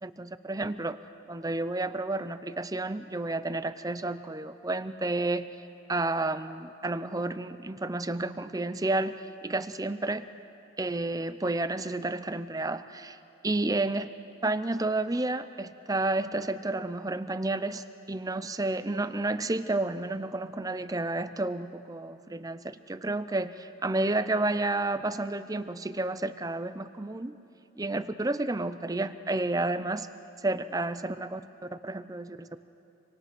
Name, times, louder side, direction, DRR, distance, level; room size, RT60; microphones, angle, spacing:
voice 1, 0.0-1.0 1.3-5.4 5.9-10.3 10.8-13.2 13.4-14.1 14.4-27.4 27.8-30.1 30.4-32.6, right 2 dB, 15° right, 12 dB, 0.6 m, -31 dB
26.5 x 25.0 x 6.1 m, 2.7 s
head